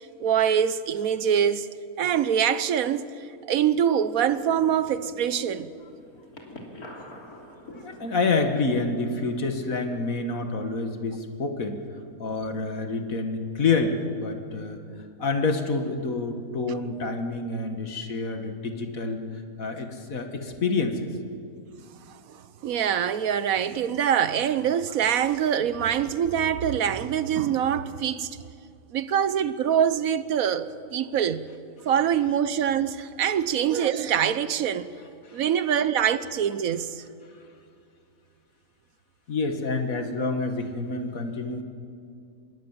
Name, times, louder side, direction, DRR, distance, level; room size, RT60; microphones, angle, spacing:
voice 1, 0.2-1.7 2.0-3.0 3.5-5.7 22.3-28.3 28.9-31.5 31.8-34.9 35.3-37.0, right 9 dB, 75° right, 1.3 m, -24 dB
sound 1, 4.1-9.9, left 1 dB, 90° left, 3.6 m, -46 dB
voice 2, 7.7-11.8 12.2-14.8 15.2-19.2 19.6-21.1 35.2-35.4 39.3-41.6, left 3 dB, 70° left, 2.3 m, -28 dB
25.5 x 21.0 x 7.4 m
omnidirectional pair, 1.5 m